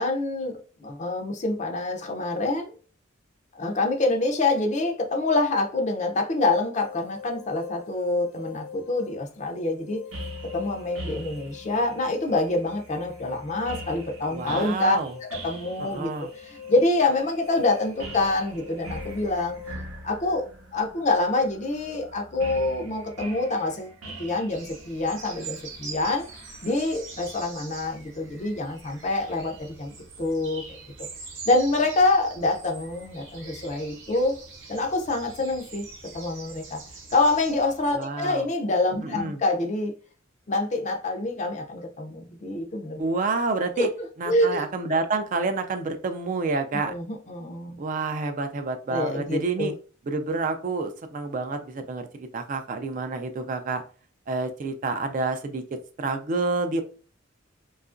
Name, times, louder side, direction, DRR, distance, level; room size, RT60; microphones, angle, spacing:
voice 1, 0.0-2.7 3.6-10.0 10.4-15.0 15.3-19.6 20.0-20.5 20.7-26.3 26.6-29.9 30.2-30.8 31.5-34.4 34.7-35.9 36.1-36.8 37.1-39.9 40.5-43.1 43.8-43.9 44.3-44.6 46.7-47.8 48.9-49.7, left 2 dB, 35° left, 0.4 m, -26 dB
sound 1, 6.7-19.8, left 8 dB, 80° left, 0.6 m, -45 dB
sound 2, 10.1-27.4, right 1 dB, 90° right, 0.7 m, -43 dB
voice 2, 14.3-15.2 15.8-16.3 37.9-38.5 39.0-39.4 43.0-43.9 44.2-47.0 47.8-49.7 50.1-53.8 54.3-55.6 56.0-56.8, right 3 dB, 40° right, 0.3 m, -28 dB
sound 3, 24.5-38.0, right 4 dB, 60° right, 0.8 m, -43 dB
2.7 x 2.3 x 2.5 m
head